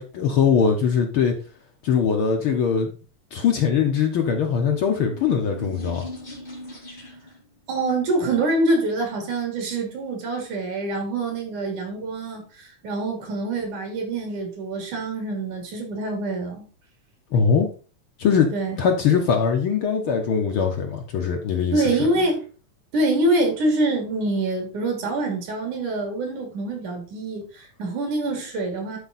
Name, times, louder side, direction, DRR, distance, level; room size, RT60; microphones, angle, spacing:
voice 1, 0.0-1.3 1.8-2.9 3.3-6.1 17.3-17.7 18.2-18.5 18.8-21.8, left 6 dB, 60° left, 3 dB, 1.4 m, -21 dB
sound 1, 4.6-7.4, left 1 dB, 15° left, 2.1 m, -39 dB
voice 2, 7.7-16.7 18.5-18.8 21.7-22.4 22.9-29.0, right 2 dB, 90° right, 3 dB, 4.0 m, -25 dB
10.5 x 4.7 x 4.1 m, 0.36 s
omnidirectional pair, 3.4 m